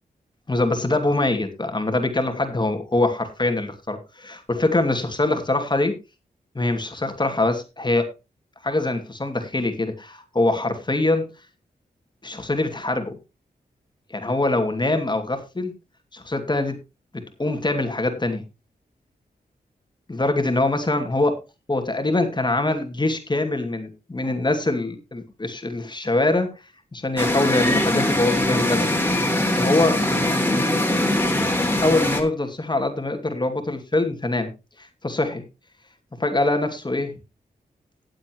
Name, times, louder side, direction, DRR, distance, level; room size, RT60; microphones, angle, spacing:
voice 1, 0.5-6.0 6.5-8.1 8.6-11.3 12.2-13.1 14.1-15.7 16.1-16.8 17.1-18.4 20.1-21.4 21.7-26.6 26.9-28.9 29.6-30.0 31.7-34.5 34.8-35.4 36.2-37.1, left 2 dB, 25° left, 6 dB, 2.5 m, -23 dB
sound 1, 27.2-32.2, left 1 dB, 10° left, 3.1 m, -22 dB
18.5 x 7.7 x 3.1 m, 0.26 s
cardioid pair, 70°, 16 cm